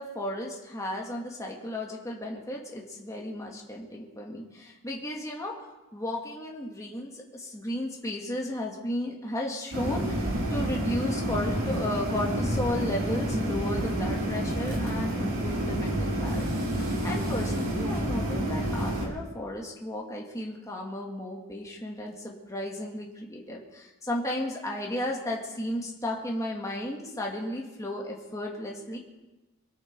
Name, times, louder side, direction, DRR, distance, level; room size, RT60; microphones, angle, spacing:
voice 1, 0.0-5.5 5.9-29.0, left 1 dB, 15° left, -2 dB, 2.1 m, -34 dB
sound 1, 9.7-19.1, right 1 dB, 70° right, 3.8 m, -29 dB
23.5 x 11.0 x 4.7 m, 1.1 s
head